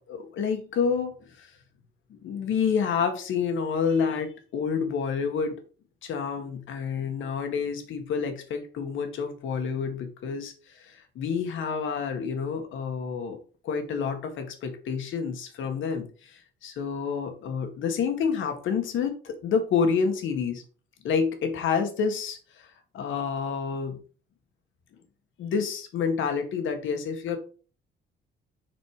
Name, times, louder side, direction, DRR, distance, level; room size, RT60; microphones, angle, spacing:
voice 1, 0.0-1.5 2.1-5.5 6.0-13.4 13.6-20.6 21.0-24.0 25.4-27.4, left 6 dB, 75° left, 6 dB, 1.9 m, -29 dB
7.7 x 4.4 x 4.9 m, 0.38 s
cardioid pair, 90°, 20 cm